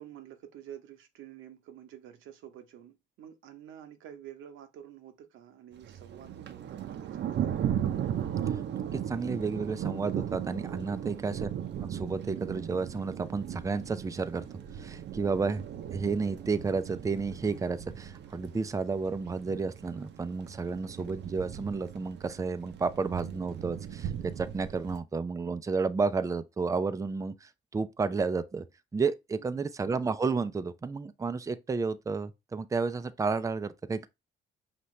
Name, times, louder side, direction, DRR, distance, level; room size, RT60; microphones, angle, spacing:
voice 1, 0.0-7.5 11.0-11.4 29.4-29.7, right 10 dB, 90° right, 0.9 m, -49 dB
Thunder, 5.8-25.0, right 10 dB, 60° right, 0.6 m, -37 dB
voice 2, 8.9-11.5 11.8-14.5 14.7-15.6 15.9-28.7 28.9-34.1, right 4 dB, 15° right, 0.4 m, -31 dB
5.5 x 2.9 x 3.2 m
cardioid pair, 90°, 20 cm